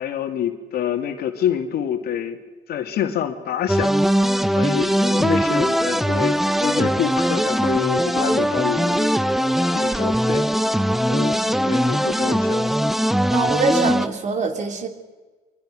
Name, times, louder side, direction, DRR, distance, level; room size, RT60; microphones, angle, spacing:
voice 1, 0.0-2.4 2.7-9.3 9.7-10.8 11.1-12.8, left 9 dB, 65° left, 6 dB, 2.4 m, -27 dB
sound 1, 3.7-14.1, equal, ahead, 0.8 m, -20 dB
voice 2, 13.3-14.9, right 4 dB, 45° right, 5 dB, 3.5 m, -23 dB
25.0 x 23.5 x 6.4 m, 1.3 s
cardioid pair, 110°, 17 cm